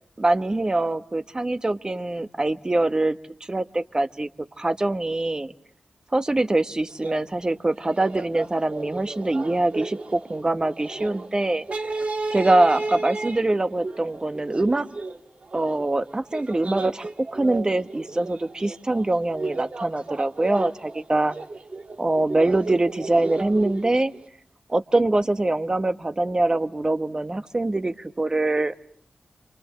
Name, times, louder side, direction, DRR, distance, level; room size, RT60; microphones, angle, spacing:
voice 1, 0.2-3.2 3.5-4.3 4.6-5.5 6.1-11.6 12.3-14.9 15.5-21.3 22.0-24.1 24.7-28.7, right 2 dB, 30° right, 10 dB, 1.2 m, -23 dB
sound 1, 6.9-7.2 7.5-7.6 7.8-24.3, right 3 dB, 55° right, 1.8 m, -33 dB
29.5 x 25.5 x 7.5 m, 0.63 s
wide cardioid pair, 90°, 3 cm